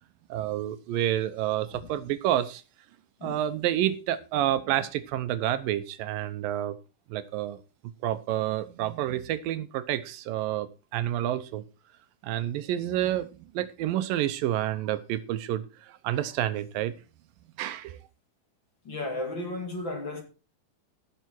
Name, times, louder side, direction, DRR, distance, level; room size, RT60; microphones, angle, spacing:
voice 1, 0.3-2.6 3.2-6.8 7.1-7.6 8.0-11.6 12.2-13.3 13.5-16.9 17.6-18.0, right 12 dB, 80° right, 2.5 m, -29 dB
voice 2, 3.2-3.5 18.8-20.2, left 2 dB, 35° left, 2.6 m, -34 dB
16.5 x 6.9 x 4.5 m
omnidirectional pair, 4.1 m